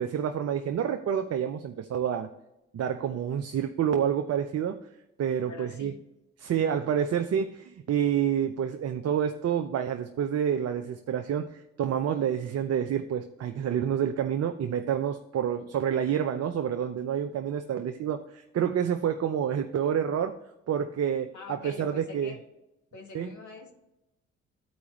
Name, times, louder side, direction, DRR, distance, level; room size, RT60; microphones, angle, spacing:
voice 1, 0.0-2.3 2.7-4.8 5.2-5.9 6.4-20.4 20.7-22.3 23.1-23.3, right 8 dB, 45° right, 7 dB, 0.6 m, -28 dB
voice 2, 5.5-6.0 21.3-22.4 22.9-23.7, left 3 dB, 55° left, 2 dB, 1.7 m, -44 dB
12.5 x 4.7 x 3.1 m, 0.90 s
hypercardioid pair, 45°, 35 cm